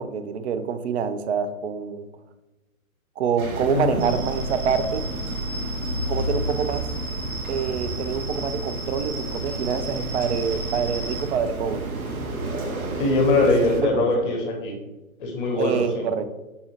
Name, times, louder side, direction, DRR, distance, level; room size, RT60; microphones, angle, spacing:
voice 1, 0.0-2.1 3.2-5.0 6.1-6.8 7.5-11.9 13.4-13.5 13.7-14.4 15.6-16.2, right 6 dB, 55° right, 10 dB, 0.5 m, -26 dB
sound 1, 3.4-13.8, right 2 dB, 85° right, 0.8 m, -32 dB
voice 2, 3.7-4.0 13.0-14.7 15.2-16.1, left 2 dB, 40° left, 1 dB, 0.9 m, -22 dB
sound 2, 4.0-11.2, right 1 dB, 25° right, 0.8 m, -34 dB
5.4 x 2.4 x 2.9 m, 1.0 s
hypercardioid pair, 130°, 42 cm